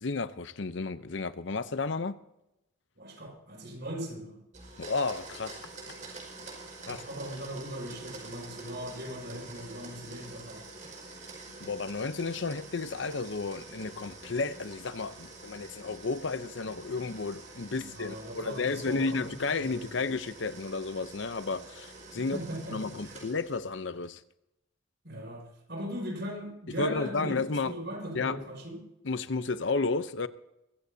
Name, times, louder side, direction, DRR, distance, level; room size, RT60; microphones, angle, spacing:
voice 1, 0.0-2.2 4.8-5.6 6.9-7.0 11.6-22.4 22.7-24.2 26.8-27.7 28.1-28.5 29.0-30.3, left 4 dB, 60° left, 0.7 m, -32 dB
voice 2, 3.0-4.4 6.8-10.7 17.8-20.0 22.2-23.2 25.0-28.8, equal, 55° right, 5.9 m, -39 dB
Domestic sounds home sounds, 4.5-23.7, right 3 dB, 40° right, 5.5 m, -47 dB
23.5 x 15.0 x 2.8 m
head